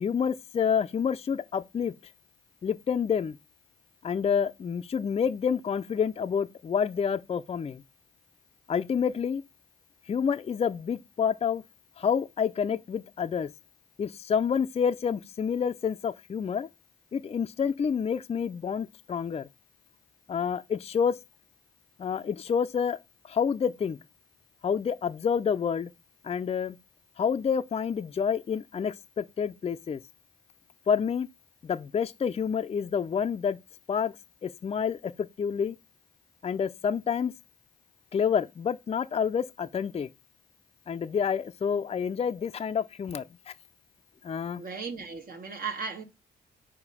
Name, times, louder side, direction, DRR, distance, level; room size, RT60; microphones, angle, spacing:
voice 1, 0.0-1.9 2.6-3.4 4.0-7.8 8.7-9.4 10.1-11.6 12.0-13.5 14.0-16.7 17.1-19.5 20.3-21.1 22.0-23.0 23.2-24.0 24.6-25.9 26.2-26.8 27.2-30.0 30.9-31.3 31.6-33.6 33.9-34.1 34.4-35.8 36.4-37.3 38.1-40.1 40.9-43.2 44.2-44.6, left 7 dB, 35° left, 0.5 m, -28 dB
voice 2, 44.5-46.0, right 5 dB, 55° right, 1.6 m, -36 dB
4.9 x 4.4 x 5.6 m
cardioid pair, 75°, 18 cm